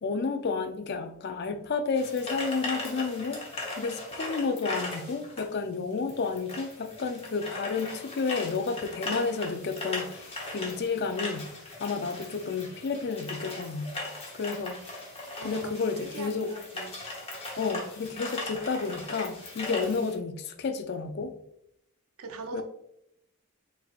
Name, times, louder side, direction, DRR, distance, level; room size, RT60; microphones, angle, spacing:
voice 1, 0.0-3.4 3.8-11.5 11.8-13.9 14.3-14.8 15.4-16.5 17.6-21.3 22.5-22.6, left 4 dB, 50° left, 8 dB, 0.4 m, -31 dB
sound 1, 1.9-20.2, left 2 dB, 25° left, 1.0 m, -39 dB
voice 2, 15.4-17.0 22.2-22.6, right 3 dB, 75° right, 6 dB, 0.6 m, -41 dB
4.6 x 3.7 x 2.4 m, 0.74 s
head